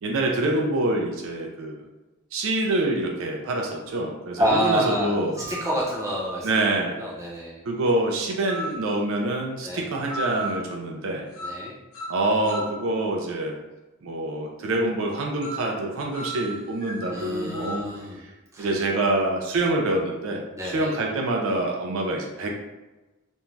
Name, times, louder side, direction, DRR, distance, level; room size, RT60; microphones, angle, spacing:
voice 1, 0.0-1.8 2.3-5.3 6.4-7.0 7.7-11.3 12.1-13.6 14.0-17.8 18.2-18.3 18.6-22.5, right 2 dB, 65° right, 0 dB, 0.4 m, -26 dB
sound 1, 3.9-4.0 4.9-6.5 8.5-8.9 10.1-10.6 11.3-11.7 11.9-12.8 15.4-15.7 16.1-17.9, right 1 dB, 70° left, 0.8 m, -36 dB
voice 2, 4.4-5.1 5.4-6.6 7.0-7.6 9.6-9.8 11.4-11.8 17.1-18.2 18.5-18.7 20.5-20.9, equal, 15° right, -5 dB, 0.6 m, -27 dB
2.5 x 2.2 x 3.0 m, 1.1 s
head